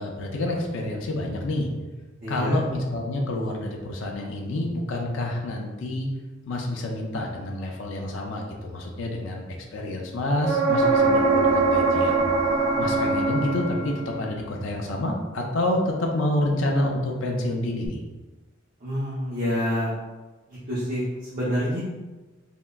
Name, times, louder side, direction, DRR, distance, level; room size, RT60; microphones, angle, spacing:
voice 1, 0.0-1.7 2.3-6.1 6.5-9.4 9.7-12.2 12.8-18.0, left 1 dB, 70° left, 0 dB, 0.4 m, -28 dB
voice 2, 2.2-2.6 18.8-19.9 20.5-21.8, equal, 45° right, -9 dB, 0.7 m, -27 dB
sound 1, 10.4-14.2 17.9-18.0, right 3 dB, 80° right, 0.4 m, -22 dB
3.5 x 2.1 x 2.2 m, 1.2 s
head